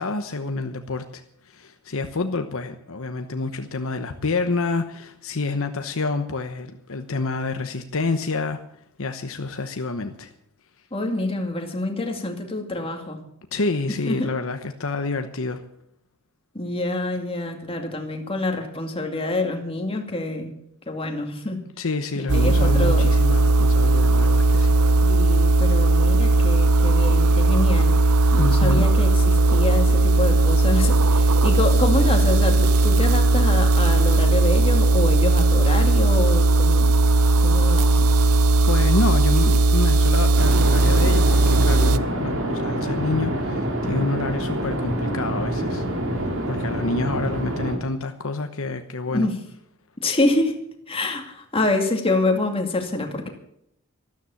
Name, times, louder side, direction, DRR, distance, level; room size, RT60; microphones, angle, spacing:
voice 1, 0.0-8.6 9.0-10.3 13.5-15.6 21.8-24.8 28.4-28.9 38.7-45.8 46.2-49.3, left 3 dB, 65° left, 7 dB, 1.0 m, -28 dB
voice 2, 10.9-13.2 14.0-14.3 16.5-20.5 20.9-21.6 22.3-23.1 25.0-27.9 28.3-36.9 37.4-38.0 49.1-49.4 50.0-50.6 50.9-53.3, left 2 dB, 25° left, 3 dB, 2.4 m, -26 dB
sound 1, 22.3-42.0, right 2 dB, 75° right, 0.7 m, -17 dB
sound 2, 40.4-47.8, right 1 dB, 60° right, 3.3 m, -26 dB
13.5 x 13.0 x 7.2 m, 0.74 s
head